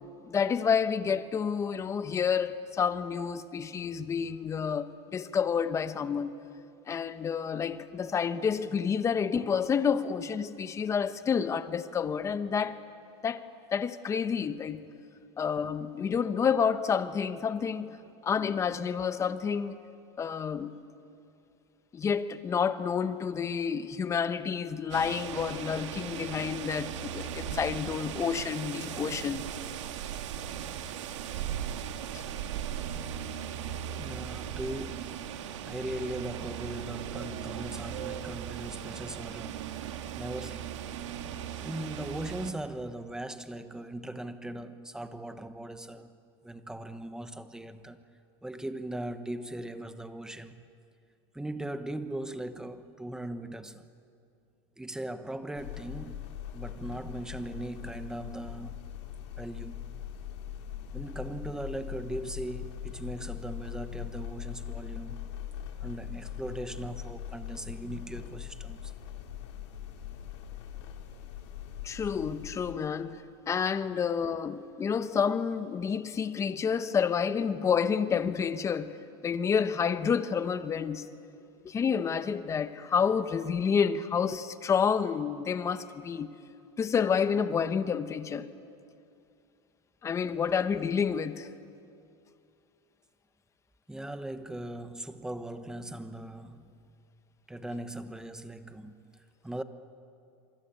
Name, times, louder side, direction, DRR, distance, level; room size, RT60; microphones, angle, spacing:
voice 1, 0.2-6.4 6.9-12.8 13.2-14.9 15.4-18.0 18.2-19.8 20.2-20.8 21.9-29.4 32.1-32.2 71.8-79.0 79.2-81.1 81.6-86.3 86.8-88.5 90.0-91.5, left 6 dB, 20° left, 1.0 m, -29 dB
voice 2, 9.3-9.7 12.5-12.7 14.7-14.8 29.6-29.7 34.0-39.8 40.1-40.8 41.6-46.2 46.4-48.0 48.4-50.7 51.3-53.9 54.8-58.9 59.4-59.9 60.9-65.3 65.8-68.9 93.9-96.8 97.5-99.6, right 1 dB, 5° right, 1.1 m, -39 dB
sound 1, 24.9-42.5, right 9 dB, 90° right, 2.0 m, -38 dB
sound 2, 55.6-72.7, left 10 dB, 75° left, 3.1 m, -41 dB
26.5 x 25.5 x 8.9 m
supercardioid pair, 145°, 15 cm